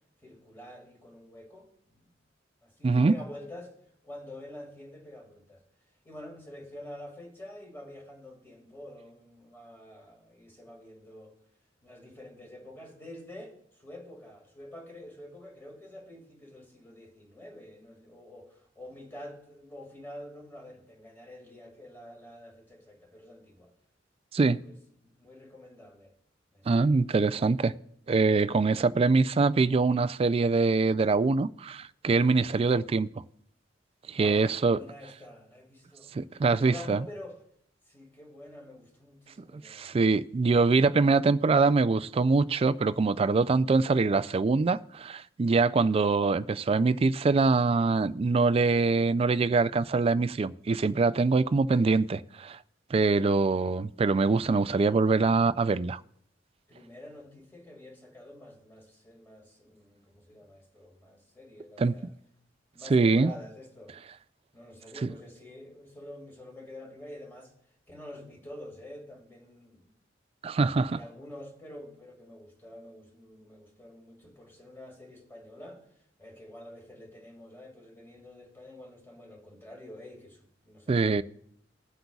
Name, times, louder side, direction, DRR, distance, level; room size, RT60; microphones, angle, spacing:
voice 1, 0.2-2.1 2.6-3.8 4.0-5.6 6.0-11.3 11.8-23.7 24.6-26.1 26.5-26.9 34.1-36.1 36.4-37.4 37.9-39.9 53.5-53.7 56.7-62.1 62.7-64.0 64.5-67.5 67.9-69.9 70.6-75.8 76.2-81.2, left 1 dB, 10° left, 2.1 m, -47 dB
voice 2, 2.8-3.1 24.3-24.6 26.7-27.7 28.1-33.1 34.1-34.8 36.1-37.0 39.5-52.6 52.9-56.0 61.8-62.0 62.9-63.3 65.0-65.1 70.4-71.0 80.9-81.2, right 4 dB, 30° right, 0.3 m, -24 dB
20.5 x 7.8 x 2.4 m
head